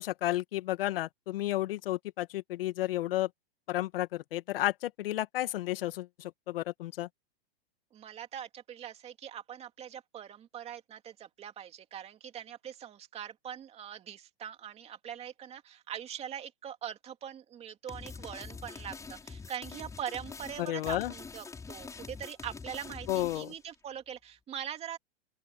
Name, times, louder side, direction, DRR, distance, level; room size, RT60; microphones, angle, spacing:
voice 1, 0.0-3.3 3.7-7.1 20.6-21.1 23.1-23.5, left 15 dB, 60° left, 1.9 m, -32 dB
voice 2, 7.9-25.0, right 9 dB, 20° right, 2.6 m, -42 dB
sound 1, 17.9-23.6, left 4 dB, 10° left, 6.5 m, -45 dB
open air
hypercardioid pair, 150°, 31 cm